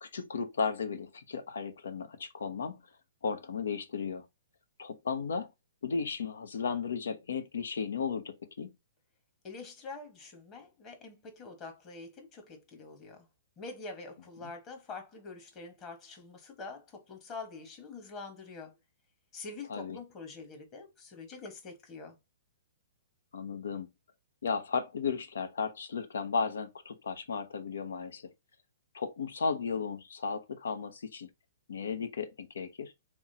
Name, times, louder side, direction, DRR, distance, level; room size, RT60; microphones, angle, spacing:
voice 1, 0.0-2.8 3.2-4.3 4.8-5.5 5.8-8.7 19.7-20.0 23.3-23.9 24.4-28.3 28.9-31.3 31.7-32.9, left 5 dB, 80° left, 0.8 m, -35 dB
voice 2, 9.4-13.3 13.6-18.7 19.3-22.2, left 3 dB, 30° left, 1.3 m, -45 dB
3.6 x 3.0 x 2.8 m
hypercardioid pair, 130°, 0 cm